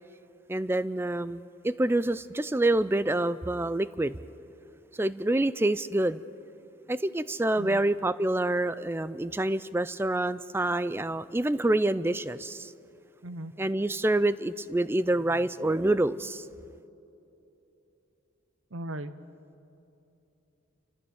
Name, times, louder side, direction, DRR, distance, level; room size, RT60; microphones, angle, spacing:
voice 1, 0.5-4.2 4.9-6.2 6.9-12.7 13.6-16.5, right 1 dB, 10° right, 15 dB, 0.4 m, -27 dB
voice 2, 18.7-19.1, right 1 dB, 90° right, 12 dB, 1.0 m, -37 dB
30.0 x 14.0 x 7.1 m, 2.9 s
head